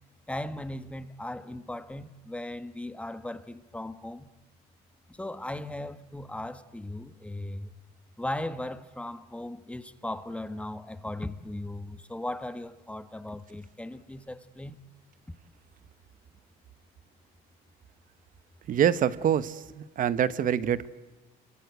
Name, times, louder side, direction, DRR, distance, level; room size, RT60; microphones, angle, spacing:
voice 1, 0.3-4.3 5.1-7.7 8.2-14.8, left 1 dB, 5° left, 1.3 m, -37 dB
voice 2, 18.7-20.9, right 9 dB, 55° right, 1.1 m, -25 dB
29.5 x 23.5 x 8.2 m
cardioid pair, 110°, 17 cm